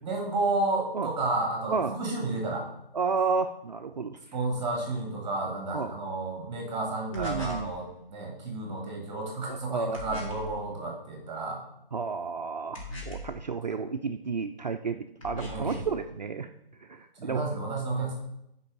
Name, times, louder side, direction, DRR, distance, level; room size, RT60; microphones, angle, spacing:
voice 1, 0.0-2.7 4.3-11.6 13.7-13.8 15.5-15.8 17.2-18.1, right 2 dB, 10° right, 0 dB, 2.5 m, -31 dB
voice 2, 2.9-4.2 5.7-6.0 7.1-7.7 9.5-10.0 11.9-16.5 16.9-17.4, right 5 dB, 50° right, 6 dB, 0.5 m, -31 dB
sound 1, 7.1-7.7 9.9-10.5 12.7-13.4 15.2-15.9, left 1 dB, 35° left, 2.4 m, -39 dB
13.5 x 5.4 x 3.9 m, 0.80 s
figure-of-eight pair, 155°, 29 cm